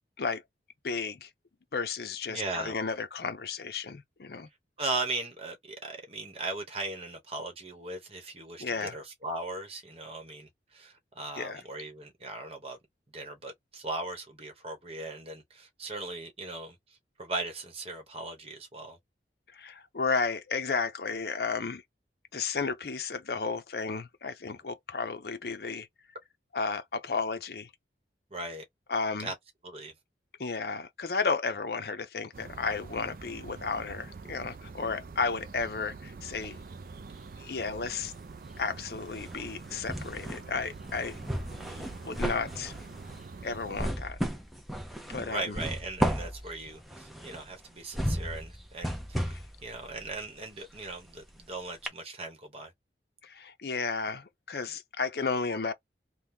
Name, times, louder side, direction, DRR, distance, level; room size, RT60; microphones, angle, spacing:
voice 1, 0.8-1.3 1.7-4.5 8.6-9.0 11.4-11.6 19.5-21.8 22.3-25.9 26.5-27.7 28.9-29.3 30.4-36.6 37.4-38.1 38.6-41.2 42.0-42.7 43.4-44.2 45.1-45.6 49.3-49.4 53.2-55.7, left 4 dB, 60° left, 0.6 m, -33 dB
voice 2, 2.3-2.7 4.8-12.8 13.1-16.8 17.2-19.0 28.3-28.6 29.2-29.3 29.6-29.9 41.6-41.9 45.3-52.7, right 2 dB, 35° right, 1.1 m, -38 dB
sound 1, 32.3-43.9, right 4 dB, 50° right, 0.4 m, -45 dB
sound 2, 36.3-37.4 37.7-51.5 51.9-52.0, equal, ahead, 0.6 m, -35 dB
2.9 x 2.2 x 3.6 m
head